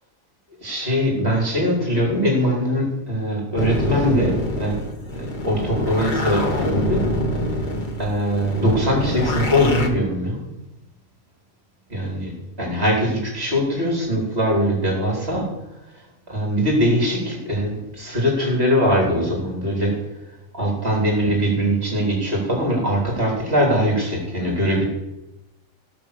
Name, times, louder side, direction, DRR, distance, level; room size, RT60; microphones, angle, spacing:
voice 1, 0.6-4.8 5.1-7.0 8.0-10.4 11.9-12.3 12.6-15.5 16.3-19.9 20.5-24.8, equal, 45° right, -1 dB, 4.5 m, -21 dB
sound 1, 3.6-9.9, left 1 dB, 35° left, 1.4 m, -25 dB
16.5 x 6.3 x 6.8 m, 0.97 s
omnidirectional pair, 1.4 m